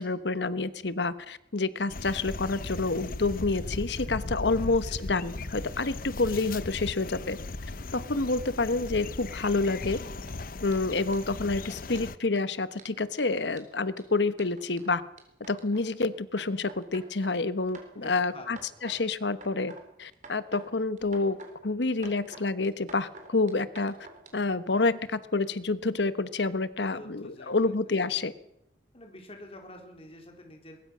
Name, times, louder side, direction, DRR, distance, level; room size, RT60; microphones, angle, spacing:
voice 1, 0.0-7.4 7.9-10.0 10.6-15.0 15.5-19.7 20.0-21.4 21.6-23.9 24.3-28.3, left 3 dB, 85° left, 14 dB, 1.2 m, -28 dB
sound 1, 1.9-12.2, left 2 dB, 55° left, 0.9 m, -38 dB
voice 2, 4.6-5.1 11.6-12.1 17.9-18.6 18.9-19.0 24.8-24.9 26.9-27.7 28.9-30.8, left 1 dB, 35° left, 3 dB, 3.8 m, -48 dB
sound 2, 9.4-9.9 10.2-10.3 10.7-10.8 11.1-11.2 11.6-11.7 12.0-12.4 12.8-16.0 16.4-17.3 17.7-18.2 18.5-19.0 19.3-19.8 20.1-20.7 21.0-21.5 21.8-24.3, right 3 dB, 45° right, 4.0 m, -49 dB
22.0 x 21.0 x 6.2 m, 0.82 s
head